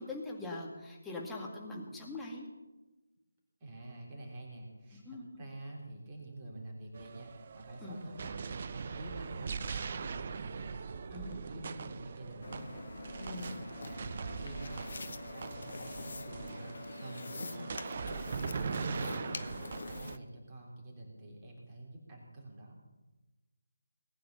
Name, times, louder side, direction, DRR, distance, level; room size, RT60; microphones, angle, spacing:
voice 1, 0.0-2.5 5.1-5.3 7.8-8.0 11.1-11.4 13.3-13.5, left 2 dB, 5° left, -3 dB, 2.1 m, -42 dB
voice 2, 3.6-8.2 8.7-10.7 11.1-12.8 13.2-14.1 14.4-14.9 15.3-17.8 18.2-19.4 19.9-22.8, right 1 dB, 20° right, -2 dB, 3.7 m, -47 dB
sound 1, 6.9-20.2, right 5 dB, 40° right, 0.7 m, -41 dB
sound 2, 12.4-20.2, left 3 dB, 55° left, 0.9 m, -45 dB
19.5 x 9.4 x 6.9 m, 1.1 s
figure-of-eight pair, 155°, 0 cm